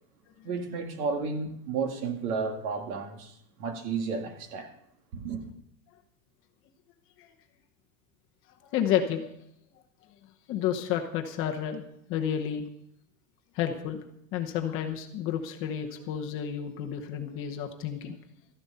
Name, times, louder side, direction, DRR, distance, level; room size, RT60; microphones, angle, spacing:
voice 1, 0.4-4.7 5.1-5.4, right 5 dB, 65° right, 2.2 m, -32 dB
voice 2, 8.7-9.3 10.5-12.6 13.5-14.0 14.3-18.2, left 9 dB, 25° left, 0.9 m, -31 dB
13.5 x 11.0 x 5.5 m
supercardioid pair, 170°, 48 cm